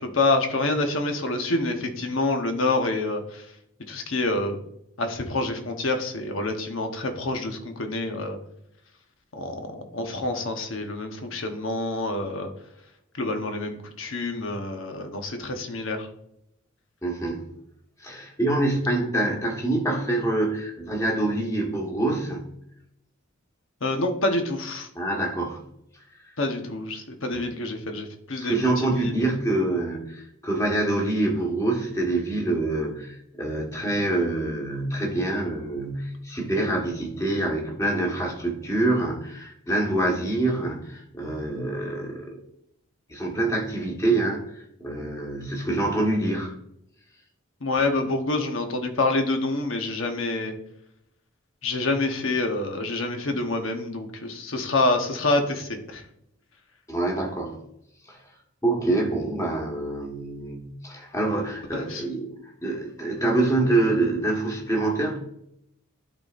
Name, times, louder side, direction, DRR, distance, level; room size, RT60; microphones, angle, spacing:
voice 1, 0.0-3.4 3.9-4.6 5.0-8.4 9.3-12.5 13.2-16.1 23.8-24.9 26.4-29.1 47.6-50.5 51.6-56.0 61.7-62.0, left 2 dB, 65° left, 5 dB, 1.0 m, -27 dB
voice 2, 17.0-17.4 18.0-22.4 24.9-25.6 27.3-27.4 28.4-42.4 43.1-46.5 56.9-57.6 58.1-58.2 58.6-65.2, right 2 dB, 15° left, -1 dB, 1.4 m, -26 dB
12.5 x 4.1 x 2.5 m, 0.77 s
head